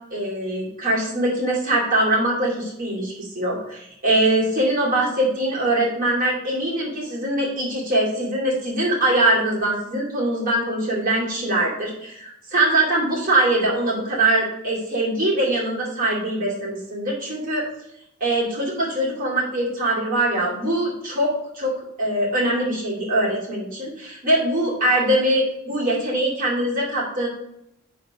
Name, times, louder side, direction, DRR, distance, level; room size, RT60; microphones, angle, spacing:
voice 1, 0.1-17.6 18.2-21.7 22.0-27.3, right 1 dB, 40° right, -4 dB, 2.3 m, -22 dB
5.4 x 4.1 x 5.9 m, 0.80 s
head